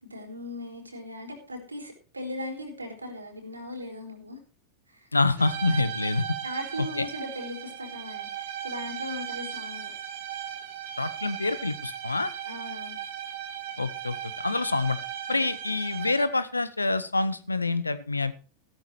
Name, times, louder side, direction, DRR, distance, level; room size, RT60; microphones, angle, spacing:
voice 1, 0.0-4.4 4.9-5.1 6.4-9.9 12.4-13.0, left 1 dB, 80° right, 4 dB, 4.3 m, -38 dB
voice 2, 5.1-6.2 11.0-12.3 13.8-14.2 14.4-15.0 15.3-18.3, left 3 dB, 80° left, 15 dB, 0.9 m, -26 dB
sound 1, 5.4-16.5, right 9 dB, 55° right, 2.4 m, -37 dB
15.0 x 13.0 x 3.2 m, 0.36 s
figure-of-eight pair, 90°, 0 cm